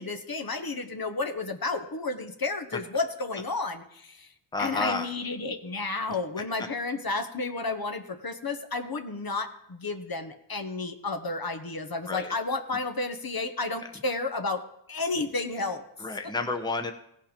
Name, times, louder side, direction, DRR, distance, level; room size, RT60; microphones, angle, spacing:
voice 1, 0.0-4.3 4.6-14.6 14.9-15.8, left 3 dB, 45° left, 6 dB, 1.1 m, -32 dB
voice 2, 4.5-5.1 12.1-12.3 16.0-16.9, left 3 dB, 10° left, 5 dB, 0.9 m, -30 dB
16.0 x 5.6 x 5.2 m, 0.77 s
cardioid pair, 45°, 48 cm